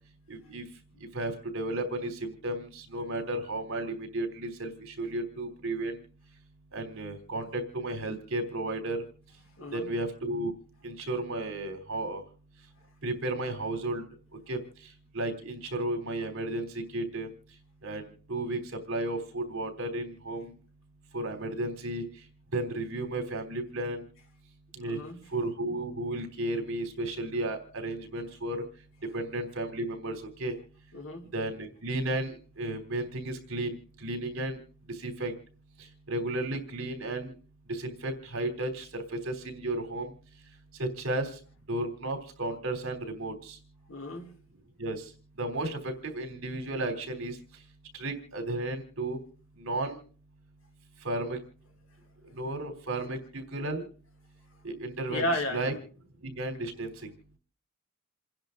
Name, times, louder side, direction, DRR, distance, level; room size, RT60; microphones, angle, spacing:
voice 1, 0.3-0.6 1.1-6.0 6.7-9.0 9.7-10.5 10.8-12.2 13.0-14.0 14.5-14.6 15.1-17.3 17.8-20.5 21.1-22.0 22.5-24.1 24.8-25.0 25.3-28.6 29.1-30.5 31.3-34.6 35.0-35.3 36.1-37.3 37.7-40.1 40.8-41.3 41.7-43.6 44.8-45.0 45.4-47.4 47.9-49.2 49.6-50.0 51.0-51.4 52.3-53.8 54.6-55.7 56.2-57.1, right 2 dB, 70° right, 5 dB, 3.6 m, -33 dB
voice 2, 9.6-9.9 24.8-25.2 30.9-31.3 43.9-44.3 55.1-55.7, left 1 dB, 70° left, 3 dB, 3.0 m, -33 dB
29.0 x 10.5 x 3.9 m, 0.43 s
head